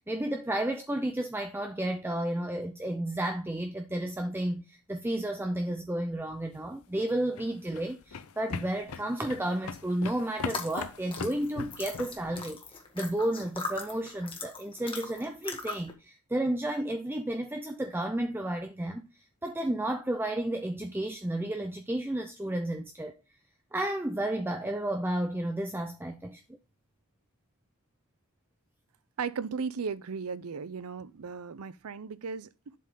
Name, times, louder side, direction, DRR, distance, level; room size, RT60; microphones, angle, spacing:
voice 1, 0.0-12.6 12.9-19.1 19.4-23.1 23.7-26.4, right 1 dB, 10° right, 0.5 m, -32 dB
sound 1, 6.8-12.5, left 5 dB, 75° left, 0.6 m, -40 dB
sound 2, 10.4-15.9, left 3 dB, 25° left, 1.4 m, -40 dB
voice 2, 29.2-32.7, right 5 dB, 85° right, 0.5 m, -36 dB
7.6 x 5.3 x 3.7 m
head